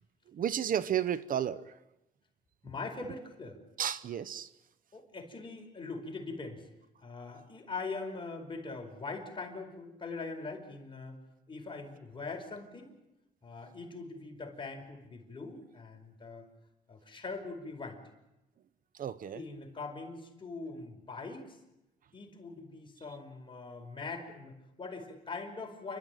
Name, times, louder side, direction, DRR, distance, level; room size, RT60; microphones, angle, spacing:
voice 1, 0.3-1.7 3.8-4.5 19.0-19.4, right 9 dB, 65° right, 15 dB, 0.8 m, -32 dB
voice 2, 2.6-3.6 4.9-6.7 7.0-11.2 11.5-12.9 13.4-16.5 16.9-18.0 19.3-21.6 22.1-26.0, left 3 dB, 35° left, 2 dB, 5.0 m, -42 dB
29.0 x 12.5 x 9.2 m, 0.95 s
cardioid pair, 80°, 15 cm